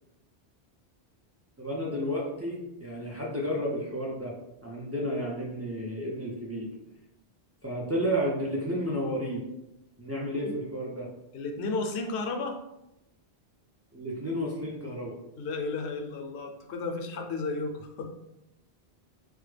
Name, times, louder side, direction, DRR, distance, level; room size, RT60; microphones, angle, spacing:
voice 1, 1.6-4.3 4.6-6.7 7.6-9.4 10.0-11.1 13.9-15.1, equal, 25° right, -4 dB, 0.3 m, -32 dB
voice 2, 10.1-10.6 11.3-12.6 15.4-18.1, left 3 dB, 75° left, 3 dB, 0.8 m, -33 dB
3.4 x 2.1 x 3.2 m, 0.87 s
omnidirectional pair, 1.1 m